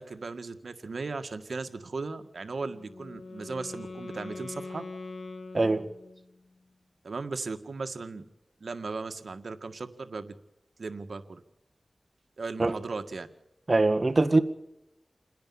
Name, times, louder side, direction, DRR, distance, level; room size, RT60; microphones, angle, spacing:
voice 1, 0.0-4.8 7.0-8.2 8.6-10.3 10.8-11.4 12.4-13.3, right 4 dB, 70° right, 8 dB, 1.8 m, -37 dB
Wind instrument woodwind instrument, 2.5-6.4, left 3 dB, 80° left, 3.1 m, -42 dB
voice 2, 5.5-5.8 12.6-12.7 13.7-14.4, right 2 dB, 40° right, 8 dB, 1.7 m, -22 dB
29.0 x 10.5 x 8.7 m, 0.90 s
wide cardioid pair, 55°, 0 cm